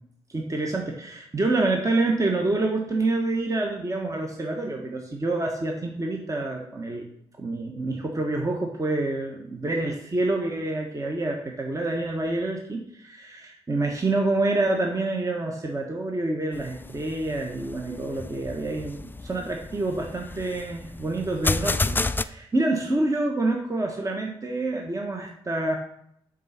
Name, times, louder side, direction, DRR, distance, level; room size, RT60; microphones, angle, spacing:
voice 1, 0.3-7.1 7.4-25.8, right 2 dB, 30° right, 1 dB, 1.3 m, -27 dB
sound 1, 16.5-22.2, left 3 dB, 20° left, 0.4 m, -31 dB
7.6 x 3.9 x 5.9 m, 0.71 s
supercardioid pair, 50°, 11 cm